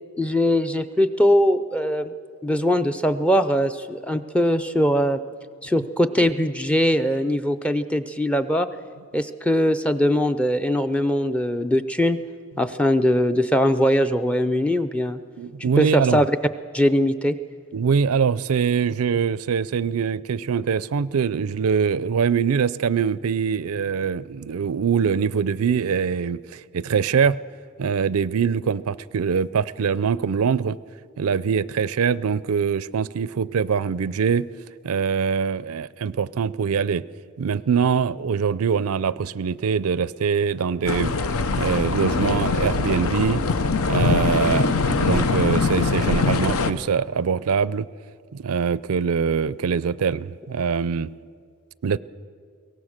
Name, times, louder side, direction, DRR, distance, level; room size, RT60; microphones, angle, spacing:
voice 1, 0.2-2.1 2.4-5.2 5.6-8.7 9.1-12.2 12.6-15.2 15.6-16.3 16.7-17.4, equal, 5° left, 11 dB, 0.5 m, -21 dB
voice 2, 15.4-16.2 17.7-27.4 27.8-30.8 31.2-34.5 34.8-37.0 37.4-41.1 41.6-43.4 43.8-47.9 48.3-51.1 51.8-52.0, right 6 dB, 85° right, 19 dB, 0.4 m, -23 dB
sound 1, 40.9-46.7, left 4 dB, 80° left, 0.8 m, -22 dB
22.5 x 18.0 x 6.5 m, 2.1 s
head